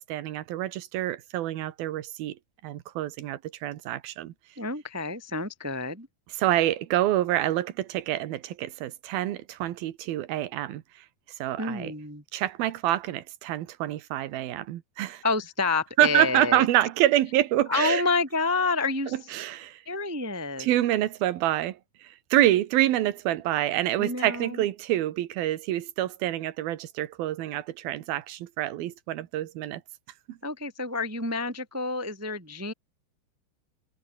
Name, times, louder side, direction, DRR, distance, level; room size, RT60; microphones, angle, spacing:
voice 1, 0.0-4.3 6.4-10.8 11.4-11.9 12.3-15.2 16.0-18.0 19.3-19.8 20.6-29.8 30.3-30.4, right 14 dB, 70° right, 2.9 m, -27 dB
voice 2, 4.6-6.1 11.6-12.2 15.2-16.6 17.7-19.1 19.8-20.7 24.0-24.6 30.4-32.7, left 3 dB, 20° right, 0.4 m, -28 dB
omnidirectional pair, 4.8 m